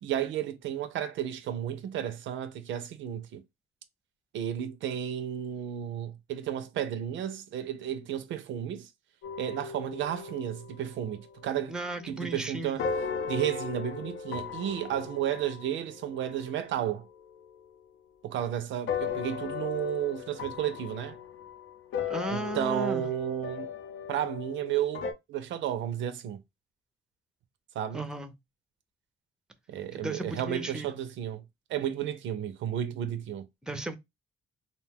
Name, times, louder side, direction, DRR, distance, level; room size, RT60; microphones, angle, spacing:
voice 1, 0.0-3.4 4.3-8.9 9.4-11.8 12.1-12.8 13.3-17.1 18.2-21.2 22.3-23.7 24.1-26.4 27.8-28.0 29.7-31.4 31.7-33.5, right 10 dB, 75° right, 0.5 m, -32 dB
sound 1, 9.2-12.5 12.8-17.7 18.9-25.1, left 6 dB, 75° left, 0.7 m, -37 dB
voice 2, 11.7-12.8 22.1-23.1 27.9-28.3 29.9-30.9 33.6-34.0, right 2 dB, 5° right, 0.5 m, -35 dB
2.6 x 2.1 x 3.4 m
cardioid pair, 90°, 20 cm